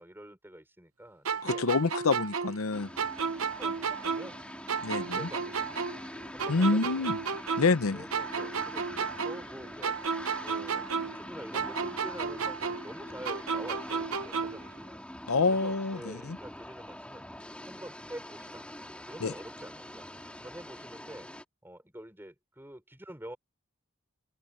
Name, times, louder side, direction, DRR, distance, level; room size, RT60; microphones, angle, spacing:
voice 1, 0.0-1.7 3.3-4.4 4.7-5.9 6.3-7.1 7.9-9.9 10.4-15.0 15.5-17.3 17.6-18.7 19.0-20.0 20.4-21.3 21.6-23.4, right 1 dB, 10° right, 5.5 m, -47 dB
sound 1, 1.2-4.4 4.7-7.8 8.1-11.3 11.5-14.7, right 5 dB, 85° right, 1.0 m, -33 dB
voice 2, 1.4-2.9 4.8-5.3 6.5-7.2 7.6-8.0 15.3-16.4 19.2-19.3, left 3 dB, 85° left, 0.8 m, -27 dB
sound 2, 2.7-21.4, left 1 dB, 5° left, 2.7 m, -44 dB
open air
head